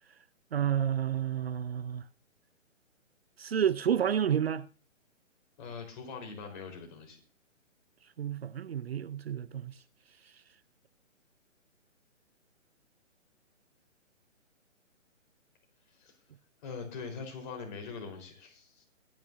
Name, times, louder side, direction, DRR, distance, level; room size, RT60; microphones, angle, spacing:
voice 1, 0.5-2.0 3.4-4.7 8.2-9.7, right 9 dB, 50° right, 0.6 m, -30 dB
voice 2, 5.6-7.2 16.0-16.1 16.6-18.8, left 5 dB, 40° left, 4.2 m, -42 dB
23.5 x 9.5 x 2.6 m
figure-of-eight pair, 135°, 38 cm